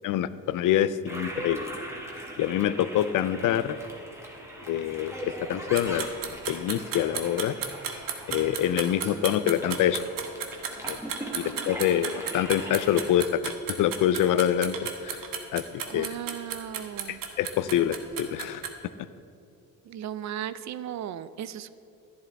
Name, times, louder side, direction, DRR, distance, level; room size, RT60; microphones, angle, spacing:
voice 1, 0.0-1.7 2.4-3.8 4.7-7.5 8.3-10.0 10.9-11.0 11.3-14.8 15.0-15.2 15.5-15.6 15.9-16.1 17.1-18.6, left 11 dB, 65° left, 15 dB, 0.5 m, -26 dB
Toilet flush, 1.1-13.1, right 1 dB, 10° right, 1.7 m, -41 dB
sound 1, 5.8-18.7, right 7 dB, 65° right, 1.1 m, -34 dB
voice 2, 15.9-17.2 19.9-21.7, right 10 dB, 50° right, 14 dB, 0.5 m, -36 dB
11.0 x 11.0 x 3.4 m, 2.6 s
cardioid pair, 95°, 35 cm